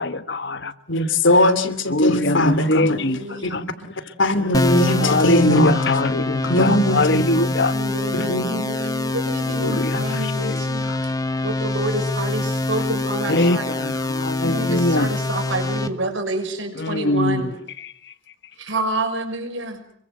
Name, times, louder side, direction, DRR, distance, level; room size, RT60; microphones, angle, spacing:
voice 1, 0.0-0.7 1.9-3.6 4.9-7.7 9.5-10.6 10.9-11.0 13.3-15.1 16.8-17.5, left 2 dB, 60° left, 1.4 m, -22 dB
voice 2, 0.9-3.0 3.4-3.9 4.2-5.8 6.4-7.2 8.1-8.5, left 1 dB, 75° left, 2.7 m, -20 dB
voice 3, 2.6-3.6 7.7-11.1 11.4-13.7 14.4-17.5 18.6-19.8, right 1 dB, 75° right, 6.2 m, -28 dB
sound 1, 4.5-15.9, left 2 dB, 20° left, 1.4 m, -25 dB
27.5 x 23.5 x 7.8 m
head